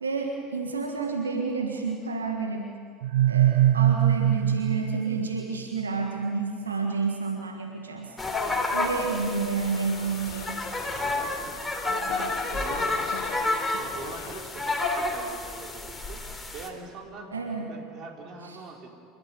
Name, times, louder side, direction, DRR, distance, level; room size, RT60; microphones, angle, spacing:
voice 1, 0.0-2.7 3.3-8.1 8.7-10.6 17.3-17.7 18.4-18.6, right 4 dB, 85° right, 2 dB, 1.7 m, -30 dB
sound 1, 3.0-5.8, right 11 dB, 70° right, 0.6 m, -22 dB
sound 2, 8.2-16.7, left 2 dB, 10° left, 3.5 m, -30 dB
sound 3, 8.4-14.4, left 9 dB, 70° left, 1.4 m, -42 dB
voice 2, 11.0-13.4 13.7-16.2 16.5-18.9, right 4 dB, 45° right, 2 dB, 3.9 m, -43 dB
28.0 x 13.5 x 9.7 m, 2.3 s
figure-of-eight pair, 75°, 0 cm